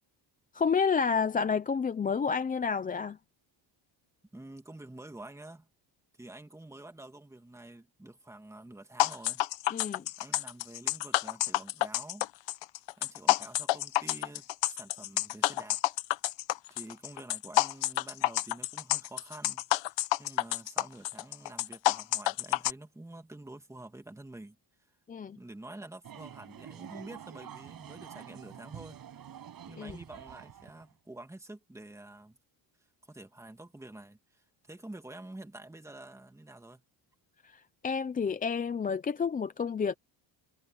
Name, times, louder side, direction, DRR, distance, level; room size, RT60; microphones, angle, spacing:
voice 1, 0.5-3.2 9.7-10.1 25.1-25.4 29.8-30.0 37.4-39.9, left 6 dB, 20° left, 0.4 m, -30 dB
voice 2, 4.3-5.7 6.2-9.4 10.2-12.3 13.0-15.8 16.7-24.6 25.4-29.0 29.7-32.4 33.0-36.8, right 2 dB, 5° right, 2.1 m, -48 dB
sound 1, 9.0-22.7, left 15 dB, 65° left, 0.9 m, -29 dB
sound 2, 26.0-30.9, right 9 dB, 45° right, 7.1 m, -47 dB
cardioid pair, 150°, 48 cm